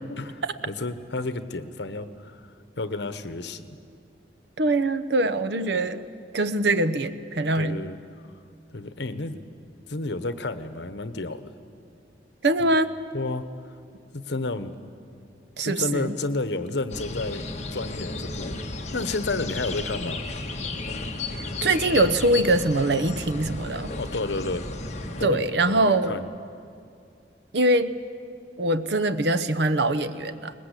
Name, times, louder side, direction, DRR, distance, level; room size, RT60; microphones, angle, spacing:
voice 1, 0.1-2.4 2.8-3.8 7.5-8.0 8.7-9.4 9.9-11.5 12.6-12.7 13.1-13.4 14.1-14.7 15.6-17.4 17.7-18.6 18.9-20.2 23.7-24.7 25.2-26.3, left 2 dB, 80° left, 11 dB, 1.1 m, -31 dB
voice 2, 4.6-6.1 6.3-7.8 12.4-12.9 15.6-16.2 21.6-23.9 25.2-26.2 27.5-27.9 28.6-30.5, right 2 dB, 75° right, 12 dB, 0.9 m, -23 dB
sound 1, 16.9-25.3, left 2 dB, 40° left, 1.5 m, -33 dB
22.0 x 20.0 x 8.3 m, 2.5 s
head